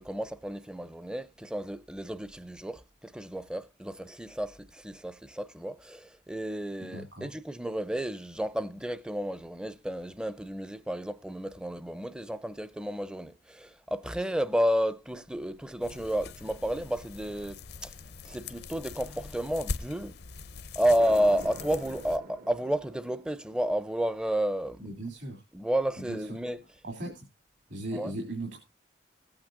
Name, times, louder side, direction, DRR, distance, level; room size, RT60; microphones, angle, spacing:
voice 1, 0.0-17.9 18.2-20.2 20.7-24.8 25.5-26.6 27.1-27.2 27.9-28.1, equal, 5° right, 0.5 m, -31 dB
voice 2, 6.8-7.3 24.8-25.4 26.0-26.4 26.8-27.2 27.7-28.6, right 1 dB, 70° right, 2.7 m, -38 dB
sound 1, 15.8-22.2, left 4 dB, 55° left, 0.5 m, -42 dB
sound 2, 21.0-23.8, right 3 dB, 45° right, 0.6 m, -46 dB
18.0 x 8.7 x 2.5 m
head